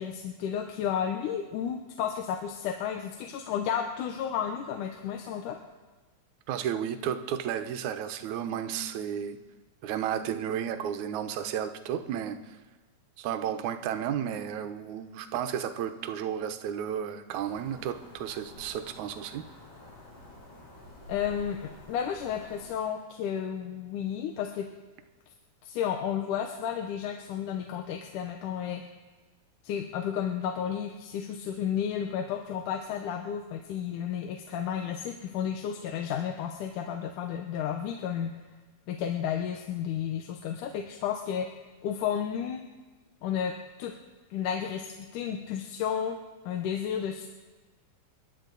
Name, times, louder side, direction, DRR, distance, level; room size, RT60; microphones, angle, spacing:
voice 1, 0.0-5.6 21.1-24.7 25.6-28.8 29.6-38.3 38.9-41.5 41.8-42.6 43.2-43.5 43.8-43.9 44.3-46.2 46.5-47.3, left 8 dB, 80° left, 4 dB, 2.4 m, -32 dB
voice 2, 6.5-9.4 9.8-12.6 13.2-19.5, right 9 dB, 75° right, 8 dB, 2.2 m, -33 dB
sound 1, 17.3-22.7, left 1 dB, 55° left, 5.7 m, -50 dB
29.5 x 11.0 x 4.0 m, 1.3 s
omnidirectional pair, 3.6 m